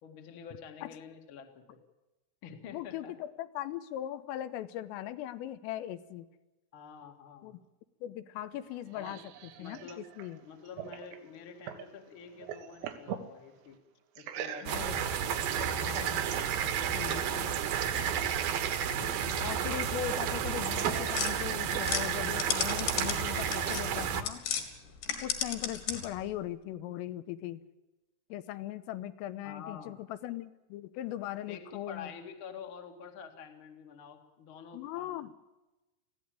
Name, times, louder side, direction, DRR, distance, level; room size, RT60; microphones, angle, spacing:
voice 1, 0.0-1.8 2.4-3.1 6.7-7.6 8.9-9.2 9.6-10.0 10.4-13.8 14.1-15.0 17.2-17.5 29.4-30.0 31.5-35.2, left 6 dB, 50° left, 4 dB, 1.6 m, -48 dB
voice 2, 2.7-6.3 7.4-7.6 8.0-10.4 14.6-15.1 15.6-16.3 16.9-17.6 19.0-24.4 25.2-27.6 28.3-32.1 34.7-35.3, left 13 dB, 80° left, 12 dB, 3.4 m, -39 dB
sound 1, 8.5-11.9 12.2-13.3 14.2-15.0, right 9 dB, 90° right, 4.2 m, -42 dB
sound 2, 14.7-24.2, right 8 dB, 65° right, 2.4 m, -31 dB
sound 3, 21.1-24.7 25.0-26.2, left 8 dB, 65° left, 4.2 m, -34 dB
21.5 x 15.5 x 8.9 m, 1.1 s
omnidirectional pair, 5.9 m